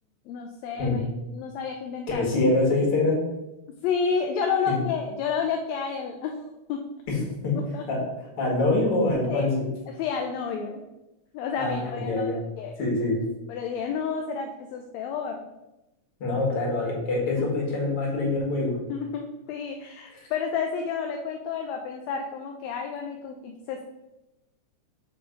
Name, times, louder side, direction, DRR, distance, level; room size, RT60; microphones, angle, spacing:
voice 1, 0.3-1.0 1.3-2.2 3.8-6.8 7.6-7.8 9.3-9.5 9.9-10.8 11.3-12.7 13.5-15.5 18.9-23.8, left 6 dB, 75° left, 3 dB, 1.7 m, -30 dB
voice 2, 2.1-3.2 4.7-4.8 7.1-7.6 7.9-8.0 8.4-9.7 11.6-12.4 12.8-13.2 16.2-18.8, left 2 dB, 50° left, -2 dB, 2.7 m, -25 dB
6.8 x 3.9 x 5.2 m, 0.98 s
omnidirectional pair, 3.4 m